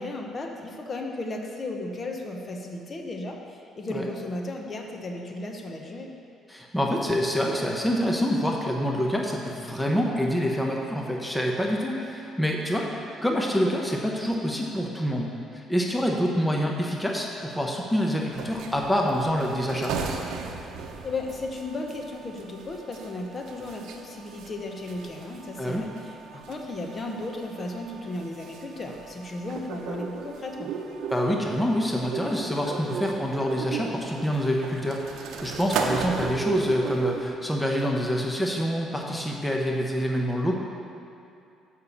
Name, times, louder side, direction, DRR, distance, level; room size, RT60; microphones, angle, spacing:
voice 1, 0.0-6.1 21.0-30.7, left 2 dB, 35° left, 2 dB, 0.9 m, -35 dB
voice 2, 6.5-19.9 25.6-25.8 31.1-40.6, equal, 5° left, -1 dB, 0.8 m, -26 dB
sound 1, 18.3-37.3, right 5 dB, 75° right, 0.7 m, -36 dB
6.8 x 5.6 x 6.9 m, 2.6 s
cardioid pair, 110°, 0 cm